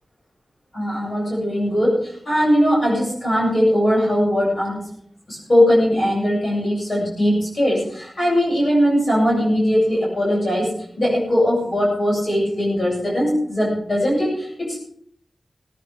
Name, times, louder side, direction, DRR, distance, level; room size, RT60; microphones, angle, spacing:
voice 1, 0.7-4.8 5.3-14.8, equal, 45° left, -5 dB, 7.7 m, -20 dB
18.5 x 10.0 x 5.2 m, 0.64 s
wide cardioid pair, 105°, 0 cm